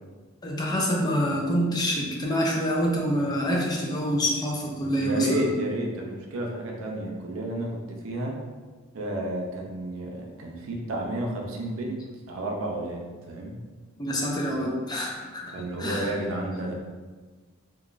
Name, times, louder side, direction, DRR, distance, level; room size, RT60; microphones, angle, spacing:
voice 1, 0.4-5.5 14.0-16.1, equal, 20° left, -2 dB, 0.4 m, -26 dB
voice 2, 5.0-8.4 8.9-12.0 12.3-13.0 13.3-13.6 15.5-16.7, right 1 dB, 75° right, 0 dB, 0.5 m, -31 dB
2.9 x 2.2 x 2.4 m, 1.4 s
head